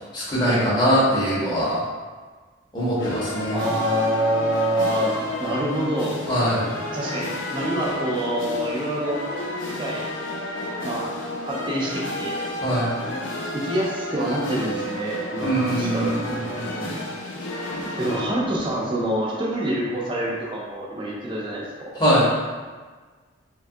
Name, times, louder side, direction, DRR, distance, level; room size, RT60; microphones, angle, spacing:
voice 1, 0.1-1.8 2.7-3.6 6.3-6.7 12.6-13.0 15.4-16.1 16.5-16.9 22.0-22.3, equal, 20° left, -8 dB, 0.7 m, -22 dB
sound 1, 3.0-19.5, left 1 dB, 70° left, 0.4 m, -31 dB
voice 2, 3.5-6.2 6.9-9.2 9.8-10.1 10.8-11.1 11.4-12.4 13.5-16.4 18.0-22.0, right 1 dB, 25° right, -4 dB, 0.5 m, -26 dB
3.0 x 2.3 x 2.6 m, 1.4 s
head